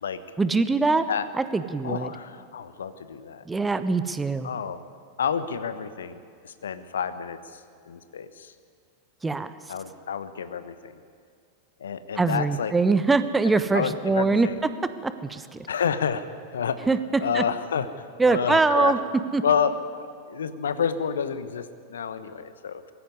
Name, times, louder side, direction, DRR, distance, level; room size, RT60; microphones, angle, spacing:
voice 1, 0.4-1.1 1.3-2.1 3.4-4.5 9.2-9.5 12.2-14.5 15.0-15.7 16.9-17.4 18.2-19.4, right 3 dB, 10° right, 12 dB, 1.0 m, -23 dB
voice 2, 1.8-3.4 4.4-4.8 5.2-8.5 9.7-10.9 11.8-12.7 13.7-14.6 15.7-16.9 17.2-17.9 18.2-18.9 19.4-22.9, left 7 dB, 65° left, 12 dB, 1.1 m, -29 dB
21.5 x 16.0 x 9.8 m, 2.1 s
figure-of-eight pair, 90°, 0 cm